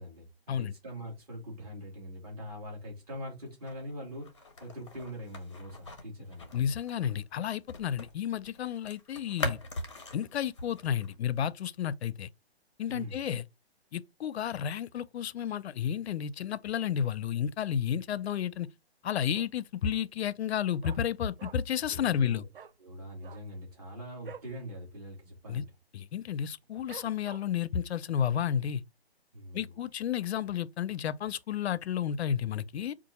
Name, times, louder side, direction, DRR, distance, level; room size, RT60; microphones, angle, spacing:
voice 1, 0.0-6.7 12.9-13.2 21.8-22.5 22.8-25.7 29.3-29.9, equal, 35° right, 2.3 m, -43 dB
sound 1, 3.6-8.2 8.4-11.1, left 2 dB, 30° left, 0.6 m, -41 dB
voice 2, 6.5-9.6 10.1-12.3 12.8-13.4 13.9-18.7 19.0-22.4 25.5-25.6 25.9-28.8 29.5-32.9, left 9 dB, 80° left, 0.5 m, -32 dB
Dog, 19.3-19.8 20.0-20.1 20.4-21.8 22.1-22.2 22.5-22.8 23.1-24.6 24.9-25.1 25.3-25.7 26.2-26.3 26.9-27.7 28.1-28.2, right 7 dB, 60° right, 0.5 m, -48 dB
4.6 x 2.5 x 4.1 m
hypercardioid pair, 180°, 32 cm